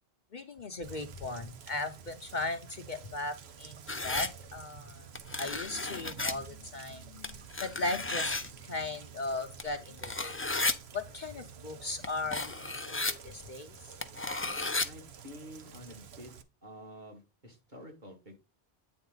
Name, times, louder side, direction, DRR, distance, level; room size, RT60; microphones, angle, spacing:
voice 1, 0.3-5.1 5.3-10.4 10.9-13.8, left 2 dB, 50° left, 7 dB, 0.9 m, -38 dB
Rain, 0.8-16.4, right 7 dB, 80° right, 1.1 m, -50 dB
sound 1, 3.9-4.3 5.1-6.3 7.2-8.5 9.6-9.7 10.0-10.7 12.0-12.1 12.3-13.1 14.0-14.9, left 2 dB, 15° left, 0.4 m, -33 dB
voice 2, 14.8-16.3 16.6-18.3, equal, 45° right, 1 dB, 2.5 m, -49 dB
8.7 x 4.0 x 3.8 m, 0.28 s
omnidirectional pair, 1.1 m